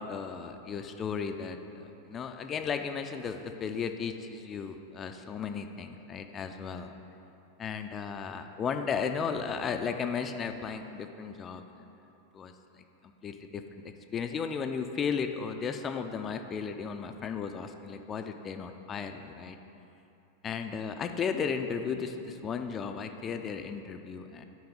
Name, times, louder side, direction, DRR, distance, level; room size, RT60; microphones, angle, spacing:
voice 1, 0.0-1.6 2.1-6.9 7.6-11.9 12.3-19.6 20.4-24.4, left 6 dB, 25° left, 7 dB, 0.4 m, -35 dB
9.2 x 4.7 x 5.2 m, 2.9 s
figure-of-eight pair, 90°, 0 cm